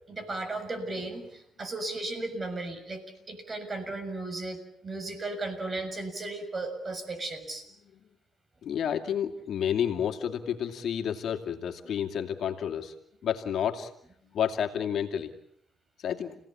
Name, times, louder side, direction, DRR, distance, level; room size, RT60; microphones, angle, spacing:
voice 1, 0.1-7.6, right 2 dB, 35° right, 7 dB, 6.8 m, -35 dB
voice 2, 8.6-12.9 13.2-13.9 14.3-15.3 16.0-16.4, left 9 dB, 65° left, 4 dB, 2.5 m, -30 dB
30.0 x 18.0 x 8.8 m, 0.73 s
cardioid pair, 90°, 0 cm